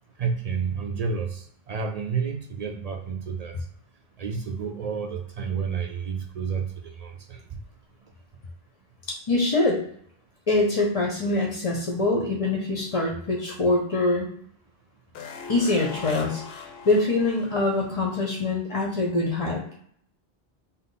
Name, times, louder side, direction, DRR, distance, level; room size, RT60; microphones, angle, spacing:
voice 1, 0.2-3.5 4.2-7.4, right 6 dB, 55° right, 3 dB, 0.4 m, -30 dB
voice 2, 9.1-9.8 10.5-14.3 15.5-16.4 16.8-19.8, left 2 dB, 35° left, -1 dB, 0.7 m, -24 dB
sound 1, 15.2-18.3 18.6-18.7, left 5 dB, 75° left, 0.8 m, -40 dB
5.4 x 2.0 x 4.0 m, 0.63 s
omnidirectional pair, 1.1 m